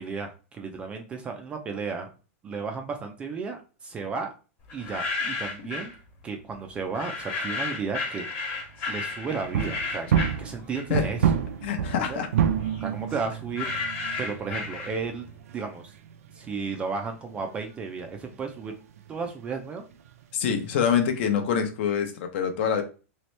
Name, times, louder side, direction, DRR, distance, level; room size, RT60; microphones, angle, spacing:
voice 1, 0.0-2.1 2.4-4.3 4.7-5.9 6.2-8.3 8.9-10.1 10.4-11.3 12.1-12.2 12.8-13.7 14.2-15.9 16.3-18.7 19.1-19.8, right 5 dB, 15° right, 4 dB, 0.3 m, -33 dB
sound 1, 4.7-6.0 6.9-11.2 11.5-15.3, left 3 dB, 25° left, 1.1 m, -33 dB
sound 2, 9.4-17.1 17.4-17.6 18.0-18.1 18.3-18.4 18.6-18.7 19.0-19.3 19.9-20.1 20.5-20.6, right 8 dB, 85° right, 0.5 m, -29 dB
voice 2, 11.6-12.3 20.3-22.8, left 7 dB, 50° left, 6 dB, 0.7 m, -25 dB
3.1 x 2.9 x 3.1 m, 0.34 s
supercardioid pair, 165°, 8 cm